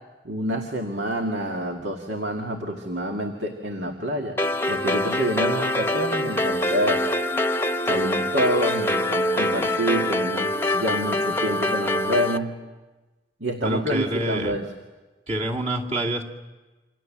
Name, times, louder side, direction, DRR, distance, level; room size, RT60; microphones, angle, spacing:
voice 1, 0.2-4.4 4.7-7.0 7.8-10.5 10.7-12.5 13.4-14.7, equal, 85° right, 2 dB, 2.2 m, -27 dB
sound 1, 4.4-12.4, left 1 dB, 15° left, 0.9 m, -24 dB
voice 2, 13.6-14.6 15.3-16.2, right 1 dB, 40° right, 0 dB, 2.5 m, -27 dB
28.0 x 26.5 x 7.5 m, 1.2 s
head